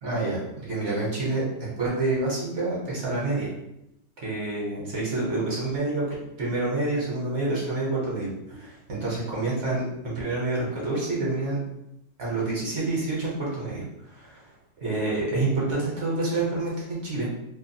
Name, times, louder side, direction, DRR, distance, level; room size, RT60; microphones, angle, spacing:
voice 1, 0.0-3.5 4.2-11.6 12.2-14.5 14.8-17.3, right 2 dB, 55° right, -5 dB, 1.1 m, -28 dB
2.7 x 2.3 x 2.6 m, 0.82 s
omnidirectional pair, 1.6 m